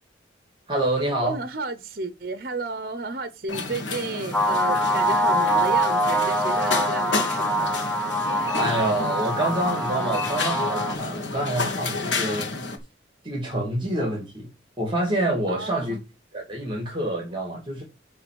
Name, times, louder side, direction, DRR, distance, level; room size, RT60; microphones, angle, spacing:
voice 1, 0.7-1.4 8.5-12.6 13.2-14.5 14.8-16.0 16.3-17.8, right 1 dB, 25° right, 2.0 m, -27 dB
voice 2, 1.2-7.9 15.5-15.9, right 3 dB, 50° right, 0.9 m, -32 dB
sound 1, 3.5-12.8, left 3 dB, 80° left, 1.6 m, -30 dB
sound 2, 4.3-10.9, equal, 5° left, 0.6 m, -24 dB
9.5 x 3.3 x 6.3 m
head